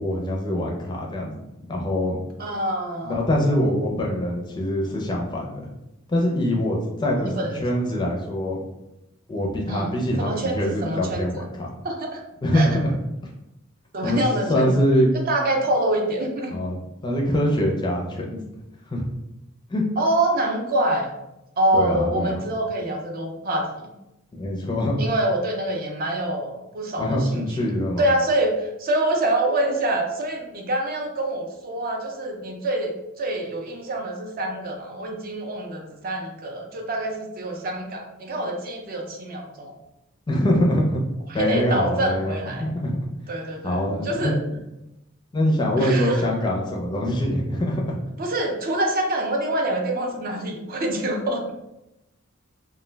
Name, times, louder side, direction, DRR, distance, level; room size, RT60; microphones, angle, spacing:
voice 1, 0.0-1.4 1.7-2.2 3.0-5.7 6.1-8.6 9.3-11.7 12.4-12.9 14.0-14.2 14.5-15.1 16.5-16.8 17.0-18.4 18.9-19.0 19.7-19.8 21.7-22.3 24.3-25.0 27.0-28.1 40.3-41.0 41.3-42.3 42.6-43.0 43.6-44.6 45.3-48.0, left 1 dB, 20° left, -1 dB, 0.4 m, -23 dB
voice 2, 2.4-3.2 7.2-7.6 9.7-9.9 10.2-11.5 11.8-12.2 12.5-12.7 13.9-14.7 15.3-16.6 20.0-21.1 21.6-23.7 25.0-27.7 28.0-39.7 41.3-42.7 43.3-44.4 45.8-46.2 48.2-51.5, right 1 dB, 45° right, 2 dB, 0.4 m, -26 dB
2.2 x 2.1 x 3.2 m, 0.90 s
head